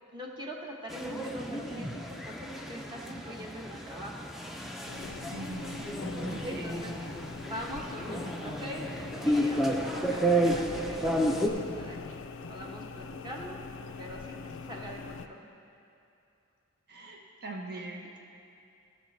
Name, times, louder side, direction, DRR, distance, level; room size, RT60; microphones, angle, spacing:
voice 1, 0.1-4.2 6.4-7.0 7.4-8.9 9.2-13.6 14.0-15.4 17.7-17.8, equal, 20° right, -1 dB, 1.1 m, -43 dB
sound 1, 0.9-11.5, right 1 dB, ahead, 0.5 m, -32 dB
sound 2, 4.9-15.3, left 4 dB, 55° left, 0.4 m, -43 dB
voice 2, 5.3-5.8 6.3-6.8 16.9-18.1, right 2 dB, 45° right, -1 dB, 1.0 m, -42 dB
15.0 x 6.6 x 3.3 m, 2.6 s
head